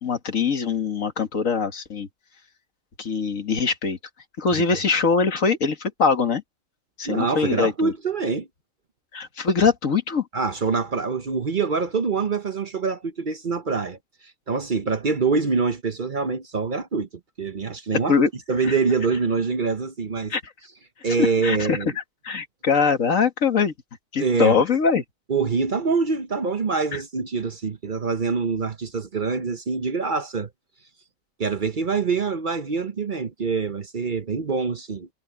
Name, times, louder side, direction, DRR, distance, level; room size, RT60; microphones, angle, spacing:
voice 1, 0.0-2.1 3.0-4.0 4.4-6.4 7.0-7.9 9.1-10.3 18.1-18.3 18.7-18.8 20.3-20.4 21.2-21.8 22.2-23.7 24.1-25.0 26.9-27.0, left 5 dB, 80° left, 2.1 m, -22 dB
voice 2, 7.0-8.5 10.3-14.0 14.5-17.1 17.4-18.1 18.5-20.3 21.0-21.9 24.2-24.6 25.3-30.5 31.4-35.1, right 4 dB, 45° right, 0.9 m, -25 dB
omnidirectional pair, 1.4 m